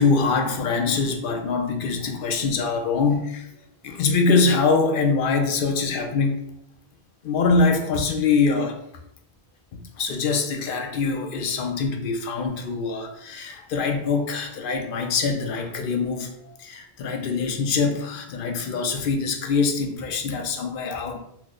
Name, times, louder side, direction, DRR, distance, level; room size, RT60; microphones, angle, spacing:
voice 1, 0.0-3.5 3.8-6.5 7.2-8.8 9.7-21.2, left 4 dB, 60° left, 4 dB, 0.7 m, -24 dB
3.0 x 2.0 x 3.6 m, 0.76 s
omnidirectional pair, 1.1 m